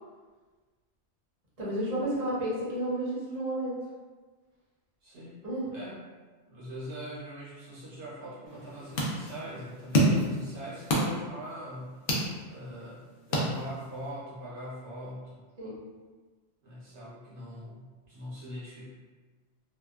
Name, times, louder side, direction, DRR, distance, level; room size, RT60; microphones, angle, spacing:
voice 1, 1.6-3.7 5.4-5.7 10.0-10.2 15.6-15.7, right 1 dB, 35° right, -8 dB, 0.7 m, -31 dB
voice 2, 5.0-5.4 5.7-6.0 6.4-12.0 12.5-15.4 16.6-18.9, equal, 70° right, -7 dB, 0.9 m, -42 dB
sound 1, 8.5-14.1, equal, 60° left, 0.6 m, -30 dB
2.7 x 2.1 x 2.3 m, 1.3 s
omnidirectional pair, 1.3 m